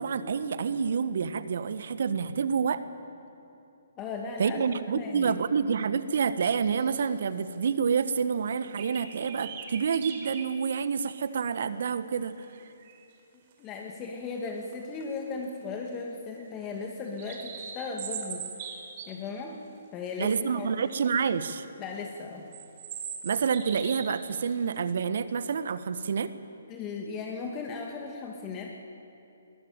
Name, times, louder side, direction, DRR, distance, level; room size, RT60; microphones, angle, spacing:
voice 1, 0.0-2.8 4.4-12.5 20.2-21.6 23.2-26.3, right 6 dB, 55° right, 13 dB, 1.3 m, -28 dB
voice 2, 4.0-5.4 13.6-18.5 19.1-19.6 19.9-20.9 21.8-22.5 26.7-28.7, left 4 dB, 20° left, 1 dB, 2.2 m, -37 dB
sound 1, 6.4-7.1 7.5-7.6 8.0-8.1 8.8-10.5 11.1-11.2 12.4-13.0 14.5-14.7 15.0-15.1 15.4-15.9 16.4-19.1 20.1-20.3 20.6-21.3 21.8-21.9 22.5-24.2 24.5-24.8, right 7 dB, 40° right, 4.0 m, -41 dB
21.5 x 20.5 x 9.1 m, 2.9 s
figure-of-eight pair, 135°, 0 cm